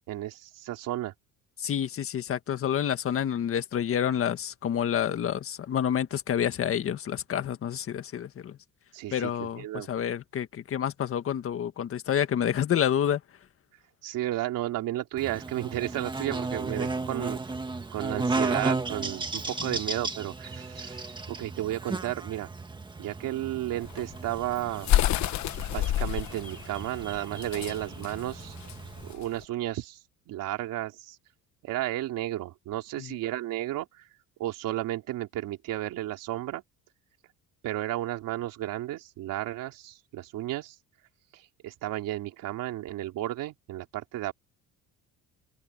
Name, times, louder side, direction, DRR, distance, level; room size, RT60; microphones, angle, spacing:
voice 1, 0.1-1.1 8.9-9.9 14.0-17.4 17.9-21.1 21.4-22.5 23.0-24.9 25.7-28.6 29.0-31.2 31.6-34.1 34.4-36.6 37.6-40.8 41.3-44.3, right 14 dB, 70° right, 3.3 m, -33 dB
voice 2, 1.6-8.6 9.1-13.2 33.0-33.1, left 9 dB, 40° left, 1.7 m, -28 dB
Buzz, 15.2-29.1, right 3 dB, 15° right, 1.7 m, -35 dB
sound 1, 23.8-29.4, left 13 dB, 55° left, 1.1 m, -29 dB
cardioid pair, 150°, 33 cm